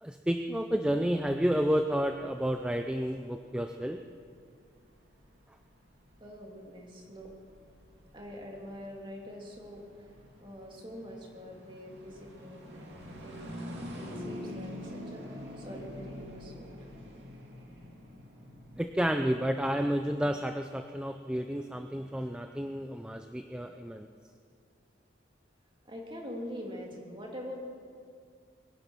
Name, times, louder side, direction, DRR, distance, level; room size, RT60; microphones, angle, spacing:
voice 1, 0.0-4.0 18.8-24.1, equal, 5° right, 6 dB, 0.4 m, -30 dB
sound 1, 2.6-19.8, left 1 dB, 60° right, 2.7 m, -47 dB
voice 2, 6.2-7.3 8.1-10.1 10.4-16.7 25.8-27.6, equal, 25° right, -1 dB, 2.5 m, -44 dB
22.0 x 10.5 x 6.1 m, 2.3 s
head